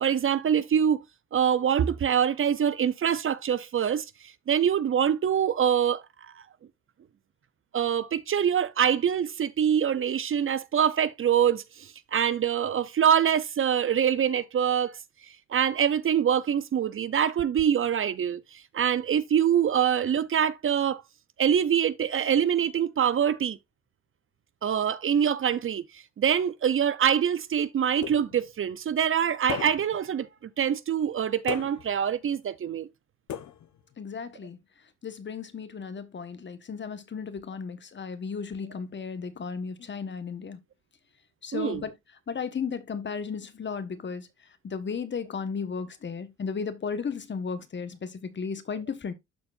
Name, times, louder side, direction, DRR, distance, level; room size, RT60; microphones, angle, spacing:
voice 1, 0.0-1.0 1.3-4.0 4.5-6.0 7.7-15.0 15.5-21.0 21.4-23.6 24.6-25.8 26.2-30.3 30.6-32.9 41.5-41.8, right 8 dB, 45° right, 0.6 m, -24 dB
sound 1, 28.0-28.6 29.5-30.1 31.5-32.1 33.3-33.9, left 10 dB, 65° left, 1.0 m, -37 dB
voice 2, 34.0-34.6 35.0-40.6 41.4-41.9 42.3-44.3 44.6-49.1, left 5 dB, 40° left, 1.3 m, -34 dB
12.5 x 4.3 x 2.5 m
cardioid pair, 90°, 30 cm